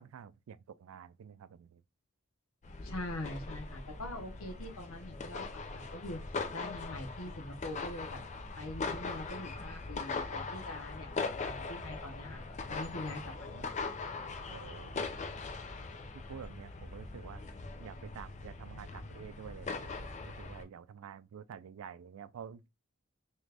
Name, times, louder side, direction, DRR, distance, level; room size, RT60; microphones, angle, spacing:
voice 1, 0.0-1.8 14.5-15.1 16.3-17.4 17.8-22.7, right 7 dB, 75° right, 0.3 m, -49 dB
sound 1, 2.6-20.6, left 4 dB, 35° left, 0.4 m, -41 dB
voice 2, 2.8-6.2 6.5-8.2 8.6-11.1 11.4-12.4 12.7-13.7, left 1 dB, 80° left, 0.9 m, -43 dB
3.1 x 2.5 x 3.3 m
head